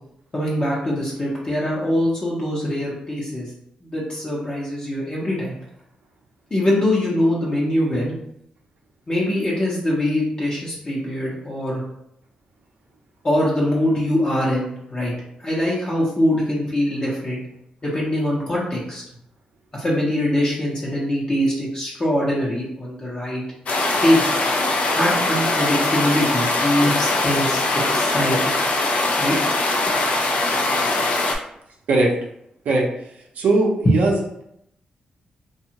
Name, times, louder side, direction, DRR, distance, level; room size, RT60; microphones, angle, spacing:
voice 1, 0.3-3.5 3.8-5.5 6.5-8.1 9.1-11.8 13.2-15.1 15.4-17.4 17.8-19.0 19.7-23.4 24.0-24.2 25.0-28.5 29.2-29.3 33.8-34.0, left 1 dB, 30° left, -6 dB, 0.8 m, -22 dB
sound 1, 23.7-31.3, left 2 dB, 60° left, 0.4 m, -21 dB
voice 2, 33.4-34.2, right 2 dB, 80° right, -1 dB, 0.6 m, -19 dB
2.6 x 2.3 x 2.8 m, 0.76 s
cardioid pair, 90°, 3 cm